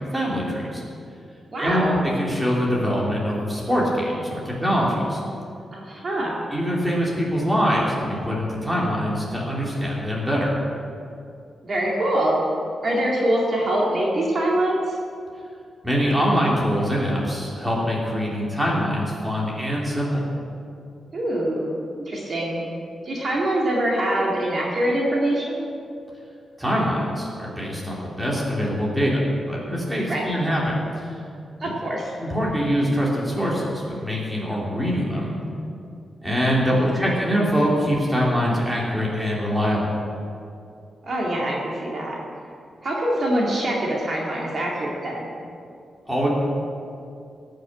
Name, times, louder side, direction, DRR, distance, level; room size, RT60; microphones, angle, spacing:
voice 1, 0.1-0.8 1.6-5.2 6.5-10.5 15.8-20.3 26.6-29.2 29.5-30.8 31.6-31.7 32.2-35.3 36.2-39.9 46.1-46.3, equal, 5° right, -5 dB, 3.1 m, -23 dB
voice 2, 1.5-1.9 5.7-6.4 11.6-12.4 12.8-15.0 21.1-22.8 23.0-25.6 30.1-30.3 31.6-32.1 36.6-37.0 41.0-42.2 42.8-45.3, right 1 dB, 40° right, -3 dB, 2.2 m, -24 dB
18.0 x 6.7 x 7.6 m, 2.4 s
wide cardioid pair, 145°, 0 cm